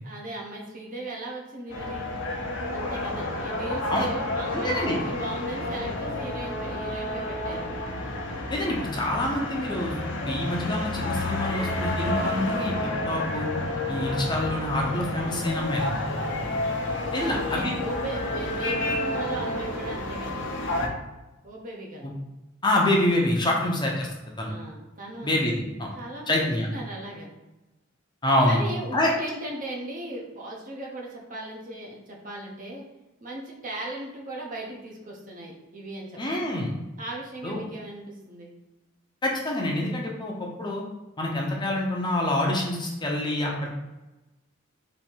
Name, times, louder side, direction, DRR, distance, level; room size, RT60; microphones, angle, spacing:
voice 1, 0.0-2.1 2.7-7.7 16.2-16.5 17.1-20.4 21.4-22.1 23.5-23.7 24.5-25.5 25.9-27.3 28.5-32.8 33.2-36.2 37.0-38.5, right 1 dB, 40° right, -1 dB, 0.9 m, -37 dB
sound 1, 1.7-20.9, left 1 dB, 60° left, 0.8 m, -30 dB
voice 2, 4.5-5.0 8.5-9.9 10.2-12.7 13.1-13.5 13.9-15.9 17.1-17.8 22.0-22.1 22.6-24.1 24.4-24.5 25.2-25.9 26.3-26.7 28.2-28.6 28.9-29.1 36.2-36.7 37.4-37.6 39.2-40.8 41.2-43.7, left 1 dB, 20° left, -1 dB, 0.7 m, -26 dB
4.2 x 2.8 x 4.4 m, 1.1 s
head